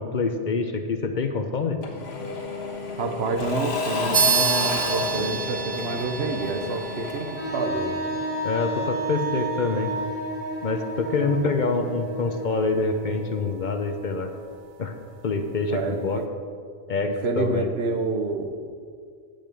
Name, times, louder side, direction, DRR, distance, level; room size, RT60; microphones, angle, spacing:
voice 1, 0.0-1.8 8.4-9.9 10.6-14.3 14.8-14.9 15.2-16.2 16.9-17.7, left 4 dB, 50° left, 6 dB, 0.7 m, -26 dB
Engine / Mechanisms / Drill, 1.8-8.5, left 3 dB, 70° left, 1.6 m, -31 dB
voice 2, 2.9-8.0 11.3-11.4 15.7-16.3 17.1-18.7, right 3 dB, 75° right, 5 dB, 1.1 m, -28 dB
sound 1, 4.1-14.1, right 5 dB, 40° right, 0.6 m, -31 dB
Wind instrument woodwind instrument, 7.4-13.1, right 1 dB, 10° left, 1.6 m, -31 dB
8.9 x 5.2 x 7.5 m, 2.1 s
omnidirectional pair, 1.1 m